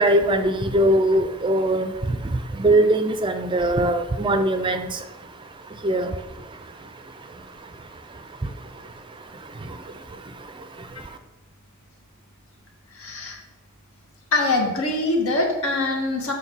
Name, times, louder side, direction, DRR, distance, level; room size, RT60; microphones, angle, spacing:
voice 1, 0.0-11.2, right 1 dB, 20° right, 8 dB, 0.5 m, -24 dB
voice 2, 12.9-13.4 14.3-16.3, left 2 dB, 70° left, 1 dB, 1.8 m, -23 dB
7.2 x 6.1 x 5.5 m, 1.1 s
head